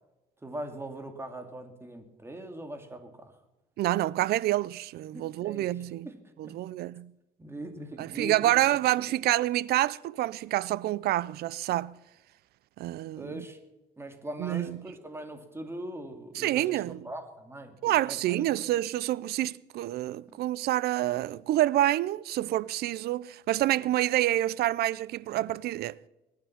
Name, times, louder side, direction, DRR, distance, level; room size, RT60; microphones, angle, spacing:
voice 1, 0.4-3.3 5.1-6.6 7.4-8.4 9.1-9.2 13.2-13.6 14.0-18.6 20.3-20.4, right 1 dB, 15° right, 2.5 m, -41 dB
voice 2, 3.8-6.1 6.4-7.1 8.0-11.9 12.8-13.4 14.4-14.8 16.3-17.1 17.8-26.0, right 14 dB, 70° right, 0.5 m, -28 dB
22.5 x 9.7 x 5.9 m
cardioid pair, 110°, 17 cm